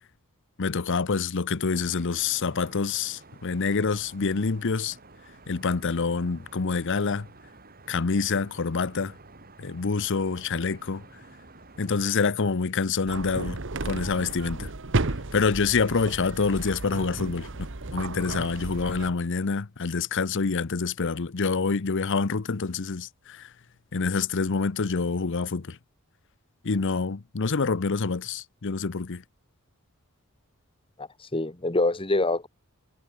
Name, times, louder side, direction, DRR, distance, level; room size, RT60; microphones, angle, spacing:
voice 1, 0.6-5.0 5.5-7.3 7.9-9.1 9.6-11.0 11.8-14.7 15.3-17.7 17.9-23.5 23.9-25.8 26.6-29.2, left 4 dB, 60° left, 0.8 m, -27 dB
sound 1, 1.7-12.2, right 3 dB, 45° right, 5.3 m, -51 dB
sound 2, 13.1-19.1, right 2 dB, 60° right, 1.5 m, -33 dB
voice 2, 31.0-32.5, left 2 dB, 25° left, 1.8 m, -26 dB
head